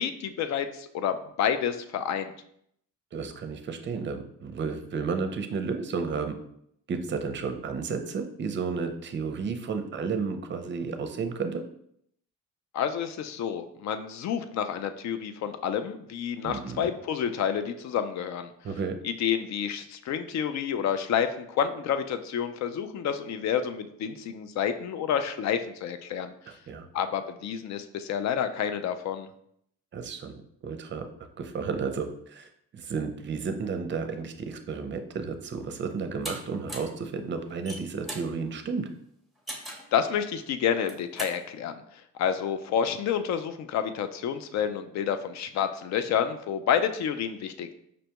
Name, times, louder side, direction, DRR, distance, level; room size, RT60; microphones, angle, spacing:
voice 1, 0.0-2.3 12.7-18.5 19.0-26.3 26.9-29.3 39.9-41.8 42.1-47.7, left 8 dB, 65° left, 9 dB, 0.4 m, -29 dB
voice 2, 3.1-6.4 6.9-11.6 16.4-16.9 18.6-19.0 26.5-26.9 29.9-30.3 30.6-31.1 31.4-38.9, right 5 dB, 40° right, 7 dB, 0.5 m, -32 dB
sound 1, 36.2-36.4 36.7-37.0 37.5-38.3 39.5-39.9 40.7-41.4, right 1 dB, ahead, 0.7 m, -37 dB
5.1 x 2.2 x 2.8 m, 0.71 s
cardioid pair, 90°, 30 cm